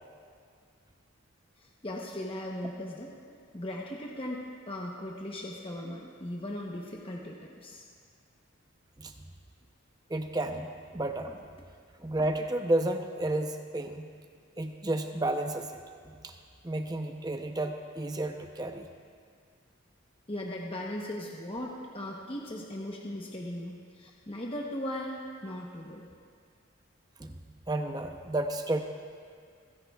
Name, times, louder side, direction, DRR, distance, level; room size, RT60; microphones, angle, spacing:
voice 1, 1.8-3.1 3.5-7.8 20.3-26.1, left 1 dB, 25° left, -2 dB, 0.9 m, -38 dB
voice 2, 10.1-11.5 12.0-14.1 14.6-16.3 16.6-18.9 27.2-27.4 27.7-28.8, right 1 dB, 20° right, 5 dB, 0.7 m, -32 dB
28.0 x 10.5 x 2.4 m, 2.2 s
head